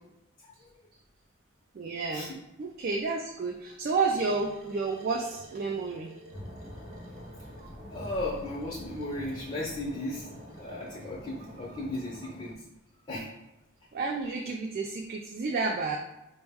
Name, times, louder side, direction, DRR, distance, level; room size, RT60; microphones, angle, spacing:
voice 1, 0.4-0.8 2.1-2.3 7.9-10.3 10.5-12.6 13.1-13.3, left 1 dB, 25° left, -4 dB, 0.5 m, -36 dB
voice 2, 1.7-2.3 2.6-6.1 7.6-7.7 13.9-16.0, right 4 dB, 45° right, 1 dB, 0.3 m, -31 dB
sound 1, 4.0-11.1, right 2 dB, 75° right, 0.8 m, -53 dB
sound 2, 6.3-12.5, equal, 15° right, 0.7 m, -45 dB
4.4 x 2.1 x 3.4 m, 0.97 s
head